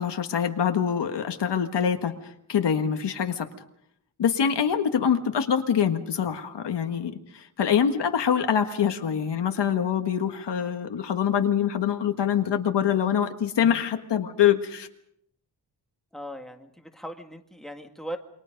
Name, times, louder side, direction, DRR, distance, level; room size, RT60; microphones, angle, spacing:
voice 1, 0.0-3.5 4.2-14.9, left 8 dB, 80° left, 6 dB, 1.6 m, -25 dB
voice 2, 16.1-18.2, equal, ahead, 4 dB, 2.0 m, -39 dB
28.5 x 24.0 x 5.3 m, 0.74 s
wide cardioid pair, 180°, 41 cm